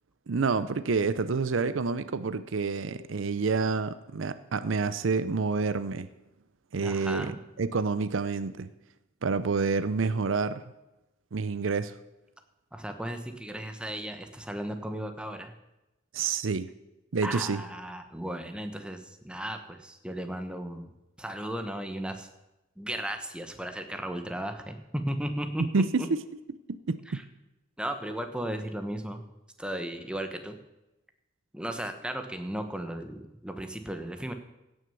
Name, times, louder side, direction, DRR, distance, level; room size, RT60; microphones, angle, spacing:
voice 1, 0.3-6.1 6.7-8.7 9.2-10.6 11.3-12.0 16.1-16.7 17.1-17.6 25.7-26.2 26.9-27.2, right 4 dB, 70° right, 14 dB, 0.6 m, -28 dB
voice 2, 6.8-7.3 12.7-15.5 17.2-20.9 21.2-22.3 22.8-25.6 27.1-27.2 27.8-29.2 29.6-30.6 31.5-34.3, right 1 dB, 5° right, 7 dB, 1.0 m, -35 dB
16.5 x 6.4 x 6.9 m, 0.97 s
head